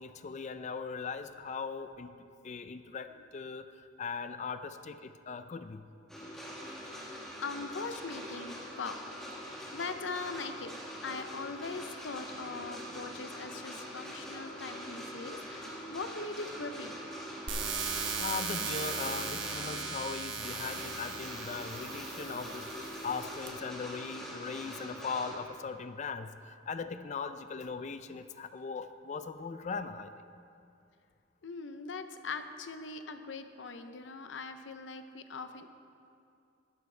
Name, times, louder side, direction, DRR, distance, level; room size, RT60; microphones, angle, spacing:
voice 1, 0.0-2.1 2.4-3.7 4.0-5.8 14.3-14.6 18.1-30.1, left 5 dB, 40° left, 10 dB, 0.4 m, -39 dB
sound 1, 6.1-25.4, equal, 5° left, 2.0 m, -44 dB
voice 2, 6.9-9.0 9.4-10.7 11.0-17.0 31.4-35.7, left 4 dB, 75° left, 8 dB, 0.7 m, -41 dB
sound 2, 17.5-23.5, right 5 dB, 90° right, 1.2 m, -38 dB
14.5 x 11.5 x 3.3 m, 2.5 s
head